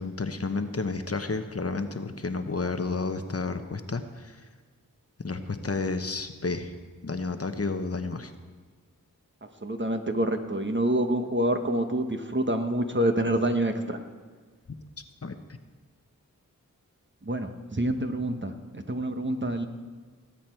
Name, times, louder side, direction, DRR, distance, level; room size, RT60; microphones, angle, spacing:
voice 1, 0.0-4.4 5.2-6.7 7.0-8.3 15.2-15.3, left 3 dB, 45° left, 8 dB, 1.0 m, -31 dB
voice 2, 9.6-14.0 17.2-19.7, right 1 dB, 35° right, 6 dB, 1.2 m, -27 dB
19.0 x 8.5 x 4.6 m, 1.5 s
wide cardioid pair, 45°, 34 cm